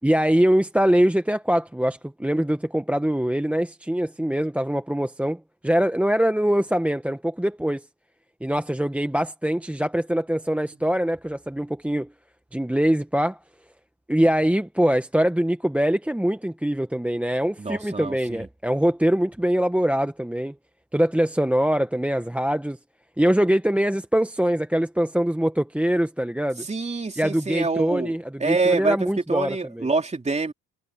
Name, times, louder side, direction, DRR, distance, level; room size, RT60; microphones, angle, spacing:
voice 1, 0.0-7.9 8.4-12.1 12.5-13.4 14.1-20.6 20.9-22.8 23.2-26.7 27.2-29.9, equal, 5° right, 1.2 m, -23 dB
voice 2, 17.6-18.5 26.6-28.1 28.4-29.0 29.3-30.5, right 3 dB, 20° right, 3.7 m, -26 dB
cardioid pair, 90°, 30 cm